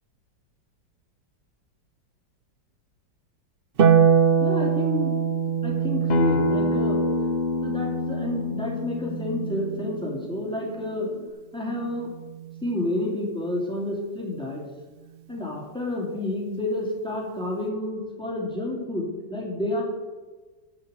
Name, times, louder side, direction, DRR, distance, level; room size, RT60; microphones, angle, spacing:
Harp, 3.8-10.3 11.9-12.9, right 7 dB, 75° right, 0.5 m, -24 dB
voice 1, 4.4-5.1 5.6-7.0 7.6-11.1 11.5-12.2 12.6-14.6 15.3-19.8, left 1 dB, ahead, -2 dB, 2.9 m, -30 dB
Acoustic guitar, 6.1-11.3, left 2 dB, 60° left, 0.4 m, -28 dB
14.0 x 5.3 x 8.0 m, 1.2 s
omnidirectional pair, 2.0 m